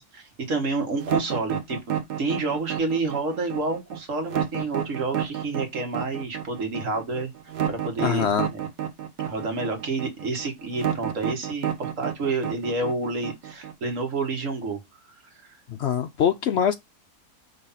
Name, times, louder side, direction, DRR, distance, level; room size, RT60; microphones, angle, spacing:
voice 1, 0.0-7.3 7.7-8.6 9.2-14.8 15.2-15.6, right 3 dB, 55° right, 1.7 m, -29 dB
sound 1, 1.0-13.9, right 10 dB, 75° right, 1.5 m, -30 dB
voice 2, 8.0-8.5 15.7-16.7, left 8 dB, 75° left, 0.6 m, -23 dB
5.3 x 3.3 x 5.6 m
omnidirectional pair, 1.7 m